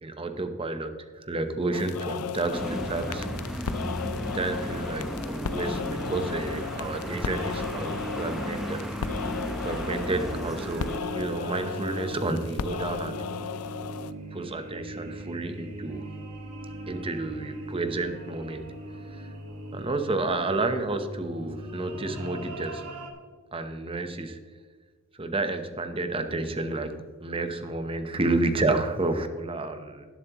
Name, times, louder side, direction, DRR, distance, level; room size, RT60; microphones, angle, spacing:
voice 1, 0.0-3.4 4.3-8.9 9.6-13.2 14.3-16.0 16.9-18.6 19.1-19.2 19.7-23.0 23.5-24.4 25.2-30.1, right 2 dB, 25° right, 8 dB, 0.9 m, -30 dB
sound 1, 1.7-14.1, left 6 dB, 85° left, 0.5 m, -35 dB
sound 2, 2.5-11.0, equal, ahead, 0.8 m, -35 dB
sound 3, 5.1-23.1, right 1 dB, 90° right, 1.7 m, -40 dB
19.0 x 7.4 x 3.0 m, 1.5 s
head